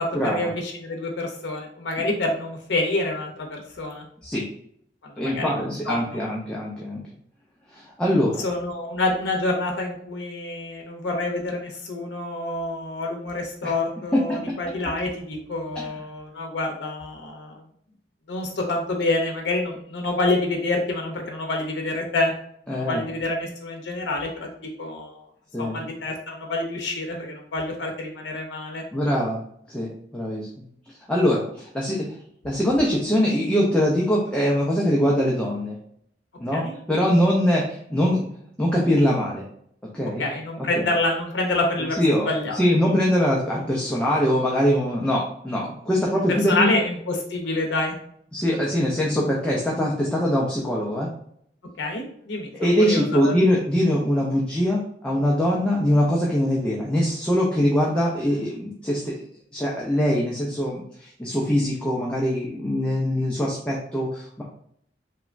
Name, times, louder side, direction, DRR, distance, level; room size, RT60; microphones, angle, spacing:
voice 1, 0.0-4.1 5.0-5.5 5.9-6.3 8.4-17.6 18.3-22.3 22.7-24.5 24.8-25.3 25.6-28.8 36.5-36.7 40.2-42.0 42.2-42.6 46.3-48.0 51.8-53.3, left 2 dB, 90° left, 1 dB, 0.6 m, -27 dB
voice 2, 5.2-7.0 7.7-8.4 13.6-13.7 14.3-14.5 15.8-15.9 22.7-23.0 25.5-25.9 28.9-29.4 29.7-30.5 31.1-32.0 32.4-35.8 36.4-38.3 38.6-39.5 39.9-40.2 40.7-40.9 42.0-46.7 48.3-51.1 52.5-59.1 59.5-64.4, equal, 5° left, -4 dB, 0.4 m, -23 dB
2.9 x 2.1 x 2.4 m, 0.67 s
head